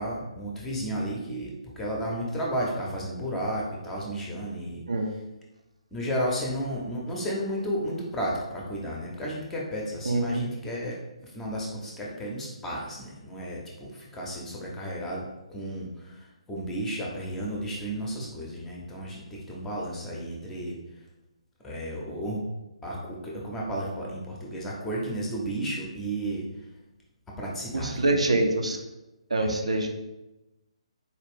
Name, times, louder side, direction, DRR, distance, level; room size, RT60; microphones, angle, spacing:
voice 1, 0.0-4.8 5.1-5.2 5.9-11.0 11.2-20.8 21.6-22.4 22.8-26.4 27.4-28.1 29.4-29.5, equal, 10° left, -3 dB, 0.6 m, -33 dB
voice 2, 10.1-10.4 27.7-28.8 29.3-29.9, right 2 dB, 70° right, 3 dB, 0.5 m, -25 dB
4.1 x 2.4 x 3.4 m, 1.0 s
figure-of-eight pair, 135°, 4 cm